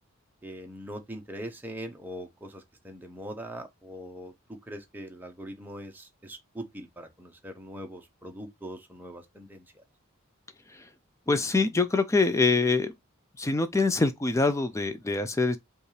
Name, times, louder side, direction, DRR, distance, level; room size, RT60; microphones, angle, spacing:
voice 1, 0.4-9.8, equal, 10° right, 0.7 m, -42 dB
voice 2, 11.3-12.9 13.4-15.6, left 3 dB, 15° left, 0.4 m, -24 dB
5.2 x 2.4 x 3.2 m
head